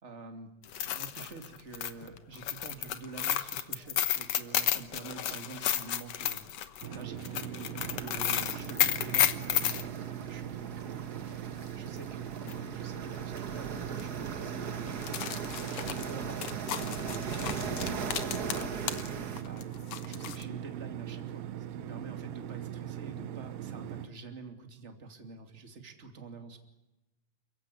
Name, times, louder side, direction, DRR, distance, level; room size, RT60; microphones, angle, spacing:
voice 1, 0.0-15.1 15.7-19.7 20.0-26.6, right 4 dB, 20° right, 5 dB, 2.5 m, -47 dB
sound 1, 0.6-9.8 12.0-12.1 12.5-12.6 13.4-13.6 13.9-14.0 14.9-19.1 19.4-20.4, left 10 dB, 60° left, 1.9 m, -32 dB
sound 2, 6.8-24.1, right 11 dB, 75° right, 2.6 m, -40 dB
sound 3, 7.8-19.4, right 5 dB, 55° right, 1.0 m, -39 dB
29.0 x 16.0 x 9.9 m, 0.98 s
omnidirectional pair, 4.1 m